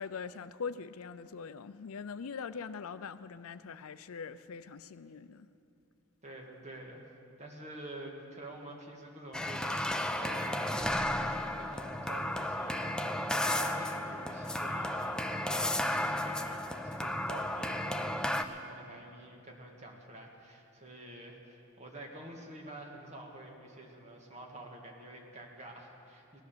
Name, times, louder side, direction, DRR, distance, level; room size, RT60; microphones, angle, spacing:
voice 1, 0.0-5.5, left 5 dB, 75° left, 0.5 m, -42 dB
voice 2, 6.2-7.1 7.4-26.4, right 1 dB, 30° right, 1.7 m, -48 dB
sound 1, 9.3-18.4, left 1 dB, 5° left, 0.3 m, -33 dB
17.0 x 11.0 x 6.8 m
head